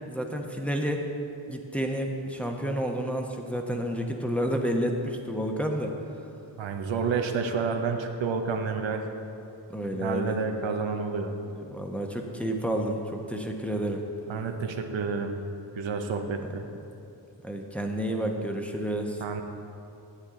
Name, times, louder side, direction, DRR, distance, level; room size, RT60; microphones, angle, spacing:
voice 1, 0.1-1.0 1.5-5.9 9.7-10.4 11.7-14.0 17.4-19.2, equal, 5° left, 2 dB, 1.0 m, -30 dB
voice 2, 6.6-9.0 9.9-11.3 14.3-15.3 15.8-16.6 19.2-19.4, right 5 dB, 75° right, 4 dB, 0.8 m, -29 dB
9.8 x 8.2 x 3.7 m, 2.8 s
cardioid pair, 50°, 46 cm